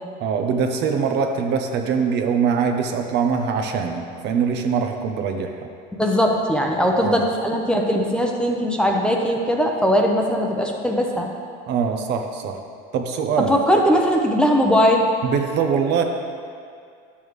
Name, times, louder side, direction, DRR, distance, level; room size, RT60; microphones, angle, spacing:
voice 1, 0.2-5.5 7.0-7.2 11.7-12.6 12.9-13.5 15.2-16.0, right 6 dB, 55° right, 4 dB, 0.8 m, -23 dB
voice 2, 5.9-11.3 13.4-15.0, equal, 5° left, 1 dB, 0.8 m, -19 dB
11.0 x 7.1 x 3.2 m, 2.2 s
supercardioid pair, 120°, 21 cm